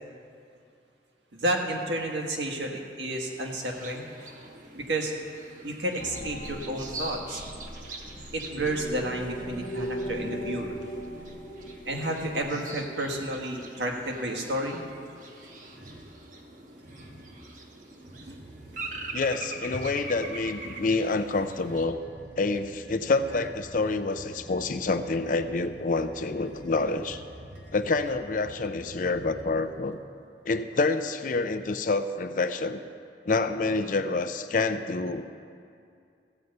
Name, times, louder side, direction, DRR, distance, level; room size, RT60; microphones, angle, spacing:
voice 1, 1.3-4.1 4.7-5.1 5.6-7.4 8.3-10.7 11.9-14.8 18.2-18.4, right 1 dB, 85° right, 1 dB, 1.5 m, -31 dB
sound 1, 3.1-21.8, right 2 dB, 45° right, 1.1 m, -43 dB
sound 2, 6.0-12.4, equal, 70° left, 1.0 m, -38 dB
sound 3, 15.7-16.2 16.8-17.4 18.0-30.0, equal, 65° right, 2.3 m, -48 dB
voice 2, 19.1-22.0 22.4-27.2 27.7-30.0 30.5-32.8 33.3-35.2, left 3 dB, 45° left, 10 dB, 0.5 m, -27 dB
15.0 x 5.4 x 8.0 m, 2.4 s
head